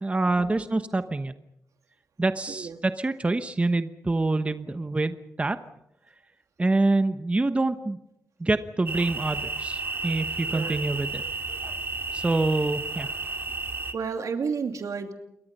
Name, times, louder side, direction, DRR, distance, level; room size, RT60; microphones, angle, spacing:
voice 1, 0.0-1.3 2.2-5.6 6.6-8.0 8.4-11.2 12.1-13.1, right 2 dB, 20° right, 9 dB, 1.1 m, -26 dB
sound 1, 8.9-13.9, right 3 dB, 40° right, 2.1 m, -32 dB
voice 2, 10.5-10.8 13.9-15.1, right 5 dB, 75° right, 5 dB, 2.7 m, -31 dB
28.5 x 23.0 x 5.5 m, 0.81 s
wide cardioid pair, 115°, 6 cm